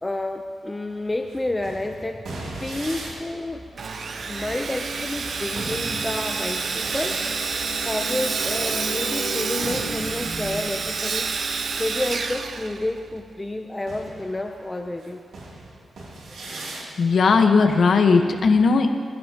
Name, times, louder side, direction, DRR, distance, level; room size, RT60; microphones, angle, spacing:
voice 1, 0.0-2.2 2.6-3.6 4.3-7.2 7.8-15.2, left 1 dB, 15° left, 4 dB, 0.7 m, -30 dB
sound 1, 0.9-13.1 13.8-18.3, right 1 dB, 85° right, 2.9 m, -37 dB
Sawing, 3.8-13.2, right 5 dB, 55° right, 0.7 m, -29 dB
voice 2, 17.0-18.9, left 4 dB, 65° left, 5 dB, 1.2 m, -17 dB
20.0 x 16.0 x 3.0 m, 2.2 s
wide cardioid pair, 115°, 0 cm